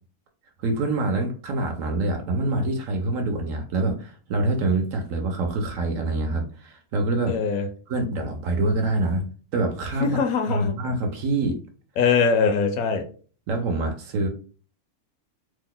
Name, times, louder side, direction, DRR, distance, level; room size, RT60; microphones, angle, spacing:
voice 1, 0.6-7.4 7.9-9.3 9.5-11.6 13.5-14.3, right 2 dB, 70° right, 4 dB, 0.9 m, -25 dB
voice 2, 7.3-7.7 10.0-10.7 12.0-13.0, left 5 dB, 70° left, 5 dB, 1.0 m, -22 dB
3.0 x 2.1 x 3.7 m, 0.40 s
omnidirectional pair, 1.6 m